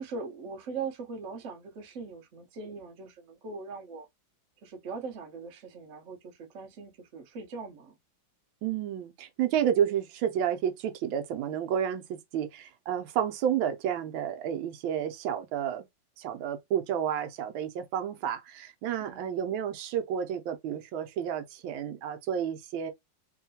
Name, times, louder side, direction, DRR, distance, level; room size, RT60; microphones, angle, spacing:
voice 1, 0.0-4.1 4.6-7.9 19.0-19.4, right 4 dB, 60° right, 0.8 m, -40 dB
voice 2, 8.6-15.8 16.2-22.9, right 9 dB, 80° right, 1.3 m, -31 dB
3.0 x 2.8 x 2.7 m
omnidirectional pair, 2.2 m